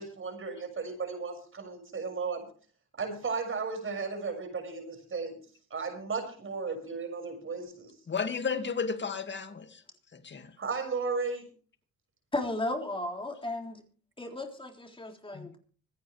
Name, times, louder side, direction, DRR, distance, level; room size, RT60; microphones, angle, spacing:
voice 1, 0.0-2.4 3.0-5.4 5.7-7.9 10.6-11.4, right 4 dB, 45° right, 6.4 m, -35 dB
voice 2, 8.1-9.8 10.1-10.6 15.3-15.5, left 5 dB, 40° left, 2.2 m, -33 dB
voice 3, 12.3-13.8 14.2-15.6, left 2 dB, 15° left, 3.7 m, -34 dB
25.5 x 9.4 x 3.3 m
cardioid pair, 90°, 30 cm